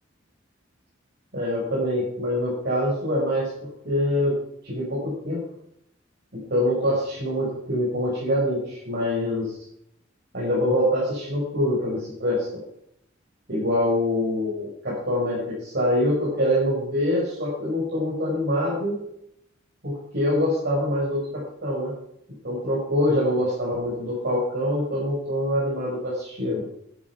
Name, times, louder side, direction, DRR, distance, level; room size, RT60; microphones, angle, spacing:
voice 1, 1.3-3.5 3.8-4.3 4.6-5.4 6.3-9.5 10.3-12.5 13.5-19.0 19.8-21.9 22.4-26.6, left 1 dB, 55° right, -6 dB, 5.1 m, -25 dB
11.5 x 9.7 x 5.9 m, 0.76 s
head